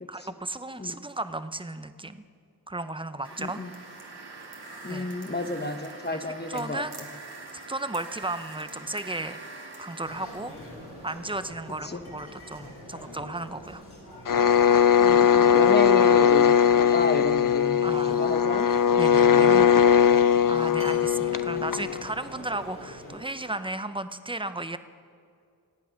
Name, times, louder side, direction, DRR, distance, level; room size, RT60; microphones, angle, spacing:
voice 1, 0.1-2.2 2.7-3.6 4.9-5.1 6.1-7.0 7.7-9.4 9.8-10.5 11.0-13.8 17.8-18.2 19.0-19.6 20.5-24.8, right 2 dB, 15° right, 11 dB, 0.7 m, -34 dB
sound 1, 3.2-11.5, right 3 dB, 75° right, 2.3 m, -44 dB
voice 2, 3.4-3.7 4.8-7.1 11.8-12.0 15.0-17.8 18.1-18.7 19.2-20.1 20.6-20.9, left 2 dB, 25° left, 8 dB, 1.0 m, -32 dB
sound 2, 10.0-23.2, equal, 80° left, 4.3 m, -44 dB
sound 3, 14.3-22.0, left 8 dB, 55° left, 0.6 m, -20 dB
26.5 x 9.1 x 5.8 m, 2.3 s
wide cardioid pair, 60°, 39 cm